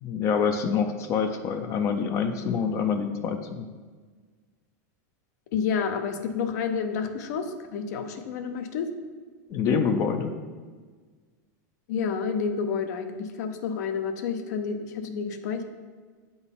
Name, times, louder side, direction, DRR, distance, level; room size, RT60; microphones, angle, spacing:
voice 1, 0.0-3.7 9.5-10.3, left 6 dB, 30° left, 7 dB, 0.4 m, -26 dB
voice 2, 5.5-8.9 11.9-15.6, left 6 dB, 70° left, 8 dB, 0.7 m, -29 dB
8.0 x 3.9 x 3.8 m, 1.5 s
supercardioid pair, 155°, 10 cm